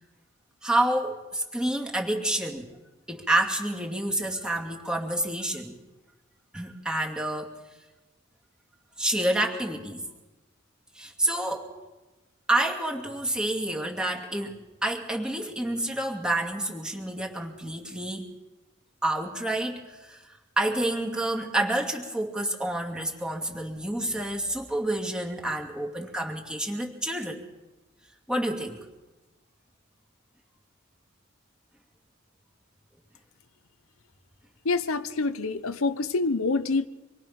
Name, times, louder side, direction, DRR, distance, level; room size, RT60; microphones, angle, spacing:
voice 1, 0.6-2.7 3.1-5.7 6.5-7.5 9.0-10.0 10.9-11.7 12.5-18.3 19.0-20.2 20.6-27.4 28.3-28.9, right 1 dB, 5° right, 0 dB, 2.5 m, -28 dB
voice 2, 34.6-36.9, left 3 dB, 85° left, 11 dB, 0.9 m, -26 dB
26.5 x 22.0 x 6.0 m, 1.1 s
head